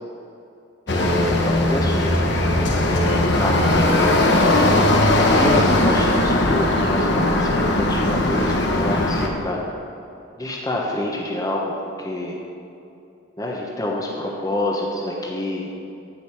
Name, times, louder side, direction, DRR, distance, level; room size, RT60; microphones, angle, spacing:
sound 1, 0.9-9.3, left 1 dB, 55° left, 1.1 m, -19 dB
voice 1, 0.9-2.2 2.5-3.9 5.2-9.6 10.4-11.7 12.0-12.4 13.4-15.7, left 1 dB, 15° left, -2 dB, 1.1 m, -27 dB
15.0 x 5.3 x 6.0 m, 2.6 s
head